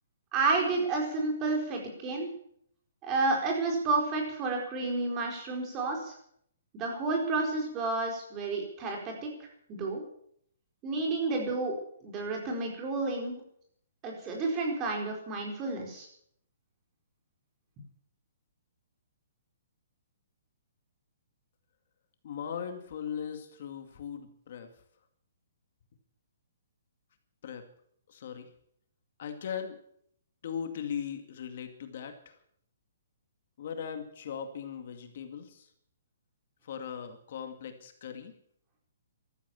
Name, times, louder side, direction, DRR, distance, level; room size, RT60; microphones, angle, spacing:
voice 1, 0.3-2.3 3.0-6.1 6.7-10.0 10.8-11.7 12.0-13.4 14.0-16.1, right 3 dB, 20° right, 1 dB, 4.4 m, -30 dB
voice 2, 22.2-24.7 27.4-27.7 28.1-28.5 29.2-29.8 30.4-32.4 33.6-35.7 36.6-38.3, left 7 dB, 50° left, 6 dB, 2.2 m, -39 dB
14.5 x 13.5 x 7.2 m, 0.67 s
hypercardioid pair, 165°, 0 cm